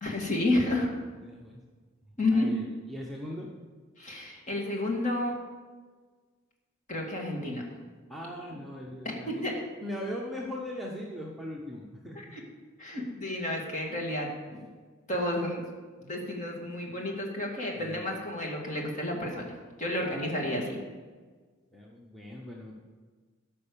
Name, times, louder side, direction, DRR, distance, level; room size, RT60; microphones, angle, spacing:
voice 1, 0.0-0.9 2.2-2.5 4.0-5.3 6.9-7.7 8.4-8.5 9.3-9.5 12.1-12.4 12.8-14.7 15.1-15.6 16.0-19.5 19.8-20.8, left 1 dB, 35° left, 0 dB, 2.2 m, -31 dB
voice 2, 1.1-1.6 2.3-3.5 8.1-12.2 17.7-18.0 20.0-20.2 21.7-22.8, left 1 dB, ahead, -3 dB, 1.0 m, -40 dB
13.5 x 5.6 x 6.9 m, 1.4 s
head